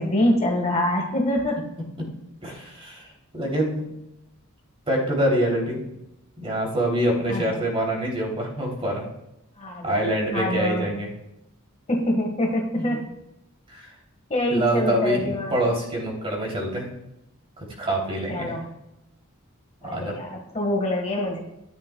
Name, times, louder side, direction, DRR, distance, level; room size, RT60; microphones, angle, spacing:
voice 1, 0.0-1.7 7.3-7.6 9.6-10.9 11.9-13.1 14.3-15.6 18.3-18.7 19.8-21.4, left 1 dB, 30° left, 1 dB, 1.6 m, -25 dB
voice 2, 2.4-3.1 3.3-3.9 4.9-5.8 6.4-9.1 9.8-11.1 12.7-13.0 13.7-13.9 14.5-16.9 17.6-18.5 19.8-20.2, right 1 dB, 25° right, -2 dB, 3.0 m, -25 dB
13.0 x 10.5 x 2.3 m, 0.85 s
head